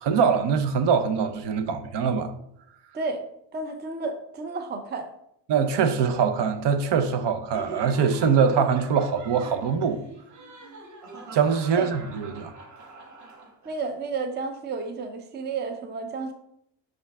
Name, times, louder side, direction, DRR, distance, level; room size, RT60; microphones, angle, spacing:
voice 1, 0.0-2.3 5.5-10.0 11.3-12.5, right 6 dB, 65° right, 0.8 m, -23 dB
voice 2, 3.5-5.1 11.8-11.9 13.6-16.3, right 4 dB, 25° right, 0.5 m, -31 dB
Laughter, 7.5-13.8, right 3 dB, 40° right, 1.1 m, -42 dB
6.1 x 5.1 x 3.5 m
cardioid pair, 170°, 44 cm